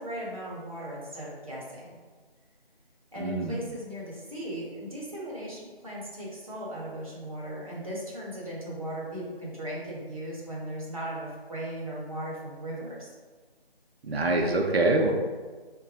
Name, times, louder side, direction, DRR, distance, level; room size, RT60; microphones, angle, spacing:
voice 1, 0.0-2.0 3.1-13.1, right 1 dB, 35° right, -6 dB, 0.7 m, -37 dB
voice 2, 3.2-3.6 14.0-15.1, right 2 dB, 80° right, 2 dB, 0.5 m, -25 dB
3.1 x 2.2 x 2.6 m, 1.4 s
figure-of-eight pair, 165°, 31 cm